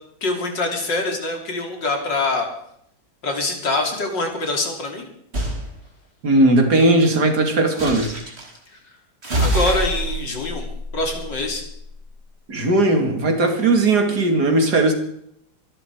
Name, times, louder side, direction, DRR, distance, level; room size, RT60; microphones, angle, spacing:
voice 1, 0.2-2.5 3.2-5.1 8.7-8.8 9.4-10.7 10.9-11.6, left 2 dB, 80° left, 3 dB, 3.8 m, -24 dB
sound 1, 5.3-5.6 7.8-8.5 9.2-11.9, right 1 dB, 35° right, 3.2 m, -26 dB
voice 2, 6.2-8.1 12.5-14.9, right 2 dB, 65° right, 4 dB, 3.0 m, -17 dB
24.5 x 11.5 x 4.8 m, 0.73 s
omnidirectional pair, 1.9 m